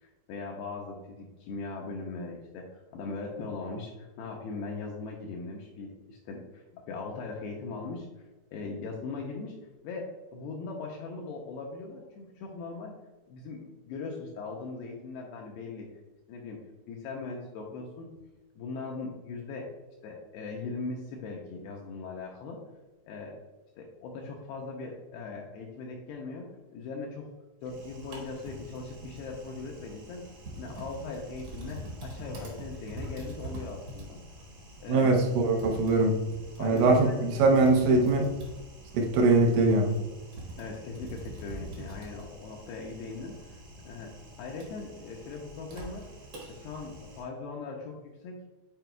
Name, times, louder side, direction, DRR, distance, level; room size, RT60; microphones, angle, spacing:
voice 1, 0.0-8.1 8.5-9.5 9.8-12.9 13.3-15.9 16.3-16.6 16.9-18.1 18.6-19.7 20.0-22.6 23.1-23.4 23.8-27.3 27.6-30.3 30.6-34.2 34.8-35.2 36.6-37.2 38.0-38.3 40.6-44.1 44.4-46.1 46.5-48.0 48.2-48.4, left 3 dB, 80° left, 0 dB, 2.3 m, -39 dB
Typing, 27.6-47.2, right 1 dB, 60° right, 1.5 m, -45 dB
voice 2, 34.9-36.2 36.6-38.3 38.9-39.9, right 3 dB, 85° right, 2 dB, 3.1 m, -22 dB
9.1 x 4.5 x 2.3 m, 1.2 s
omnidirectional pair, 5.2 m